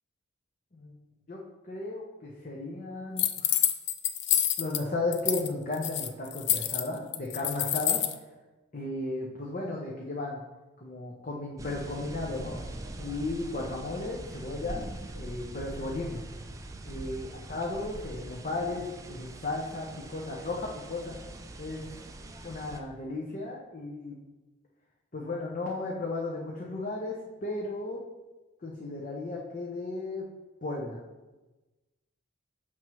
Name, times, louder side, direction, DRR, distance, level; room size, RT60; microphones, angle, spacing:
voice 1, 1.6-3.6 4.6-8.0 8.7-10.4 10.8-12.7 13.0-14.9 15.1-16.2 16.8-21.2 21.6-21.8 22.4-24.2 25.1-28.0 28.6-30.2 30.6-31.0, left 2 dB, 40° left, -3 dB, 0.8 m, -35 dB
sound 1, 3.2-4.8 5.1-5.5 5.7-8.1, left 11 dB, 55° left, 0.4 m, -27 dB
sound 2, 11.6-22.8, right 1 dB, 15° right, 0.3 m, -42 dB
7.2 x 6.1 x 3.1 m, 1.1 s
head